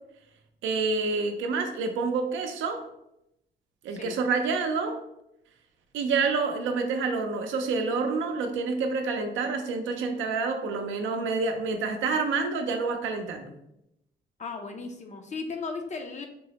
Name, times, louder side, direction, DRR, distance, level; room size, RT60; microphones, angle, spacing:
voice 1, 0.6-2.8 3.8-5.0 5.9-13.5, right 4 dB, 80° right, 5 dB, 0.5 m, -28 dB
voice 2, 14.4-16.3, left 4 dB, 35° left, 4 dB, 0.4 m, -36 dB
3.6 x 2.0 x 2.8 m, 0.82 s
cardioid pair, 90°, 20 cm